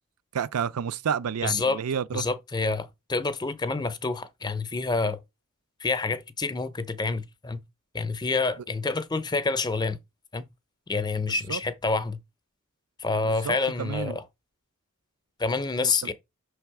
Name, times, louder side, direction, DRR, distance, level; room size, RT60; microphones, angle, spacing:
voice 1, 0.3-2.2 11.5-11.6 13.2-14.2 15.8-15.9, right 7 dB, 85° right, 0.5 m, -30 dB
voice 2, 1.4-1.8 2.1-5.2 5.8-7.6 7.9-10.0 10.3-10.5 10.9-12.2 13.0-14.2 15.4-16.1, left 3 dB, 20° left, 0.6 m, -28 dB
6.1 x 3.4 x 4.7 m
head